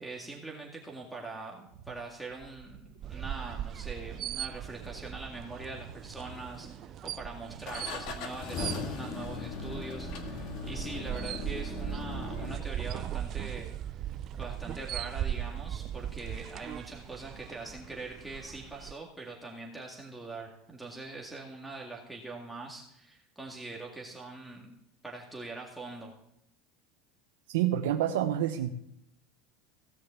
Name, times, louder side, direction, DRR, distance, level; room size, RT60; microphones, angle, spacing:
voice 1, 0.0-13.7 14.3-24.8 25.0-26.2, right 3 dB, 5° right, -3 dB, 2.0 m, -43 dB
sound 1, 1.7-15.5, right 8 dB, 65° right, 1.1 m, -53 dB
sound 2, 3.0-18.9, right 11 dB, 40° right, 0.4 m, -39 dB
sound 3, 6.3-7.0 7.7-12.6, left 5 dB, 55° left, 2.1 m, -39 dB
voice 2, 27.5-28.7, right 11 dB, 90° right, 3 dB, 0.9 m, -28 dB
16.5 x 6.5 x 8.3 m, 0.79 s
supercardioid pair, 130°, 0 cm